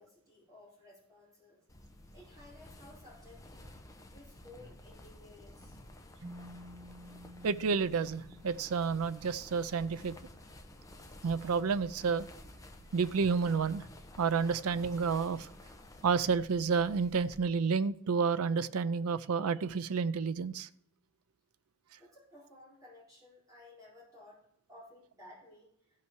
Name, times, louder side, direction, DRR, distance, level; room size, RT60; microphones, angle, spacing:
voice 1, 0.0-1.7 2.1-3.8 4.1-5.8 22.0-26.1, left 2 dB, 15° right, -7 dB, 4.3 m, -56 dB
sound 1, 1.7-17.4, left 1 dB, 15° left, 0.8 m, -53 dB
sound 2, 6.2-10.0, equal, 65° right, 1.1 m, -52 dB
voice 2, 7.4-10.1 11.2-12.3 12.9-13.8 14.2-15.5 16.0-20.7, right 5 dB, 85° right, 14 dB, 0.5 m, -30 dB
15.0 x 5.7 x 4.6 m, 0.71 s
head